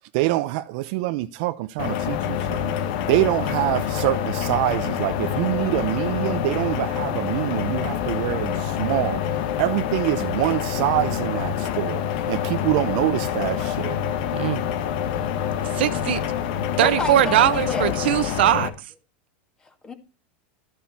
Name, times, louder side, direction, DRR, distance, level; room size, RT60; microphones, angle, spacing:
voice 1, 0.1-2.7 3.1-9.2 9.6-12.0 12.3-14.0, right 17 dB, 55° right, 0.8 m, -25 dB
sound 1, 1.8-18.7, left 9 dB, 60° left, 1.9 m, -26 dB
voice 2, 15.6-16.2 16.8-18.7, right 13 dB, 85° right, 1.3 m, -20 dB
voice 3, 16.8-18.0 19.8-19.9, left 3 dB, 15° left, 2.3 m, -30 dB
13.5 x 10.5 x 4.3 m
supercardioid pair, 165°, 6 cm